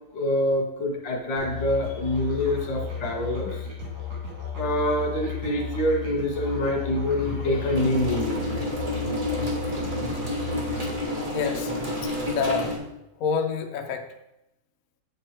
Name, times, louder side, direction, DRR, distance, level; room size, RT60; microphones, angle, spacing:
voice 1, 0.1-3.5 4.6-8.7, left 1 dB, 80° left, 1 dB, 2.2 m, -26 dB
Musical instrument, 1.4-11.0, left 6 dB, 55° right, 2.6 m, -34 dB
sound 1, 7.7-12.8, left 1 dB, 20° right, 1.3 m, -29 dB
voice 2, 11.3-11.7 12.0-12.9 13.2-14.1, left 6 dB, 65° left, 5 dB, 0.9 m, -28 dB
8.5 x 4.6 x 4.3 m, 0.88 s
omnidirectional pair, 2.0 m